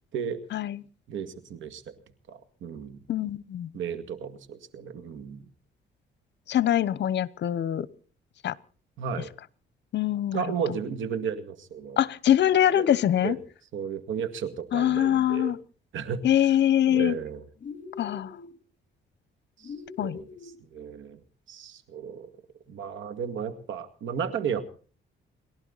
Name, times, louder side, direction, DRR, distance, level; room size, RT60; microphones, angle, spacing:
voice 1, 1.1-1.8 2.3-3.0 3.7-5.5 9.0-9.3 10.3-12.0 12.8-12.9 13.2-13.4 13.7-15.6 15.9-16.2 16.9-17.4 19.6-19.7 20.0-21.2 21.5-22.3 22.7-24.6, right 7 dB, 75° right, 11 dB, 2.2 m, -34 dB
voice 2, 3.1-3.7 6.5-7.9 8.4-8.5 9.9-10.4 12.0-13.4 14.7-15.6 16.2-17.1 18.0-18.3 20.0-20.2, left 11 dB, 60° left, 20 dB, 1.0 m, -23 dB
sound 1, 17.6-18.5 19.6-20.5, left 5 dB, 40° left, 3.2 m, -42 dB
29.5 x 12.0 x 4.1 m, 0.41 s
cardioid pair, 90°, 20 cm